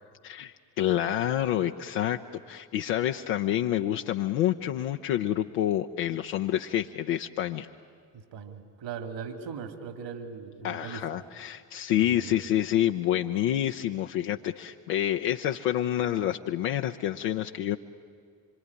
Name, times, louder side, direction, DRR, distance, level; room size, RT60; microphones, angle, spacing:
voice 1, 0.2-7.7 10.6-17.8, left 11 dB, 75° left, 4 dB, 0.9 m, -28 dB
voice 2, 8.1-11.1 12.0-12.4, right 6 dB, 65° right, 7 dB, 2.9 m, -39 dB
25.5 x 23.5 x 9.8 m, 2.1 s
hypercardioid pair, 45°, 47 cm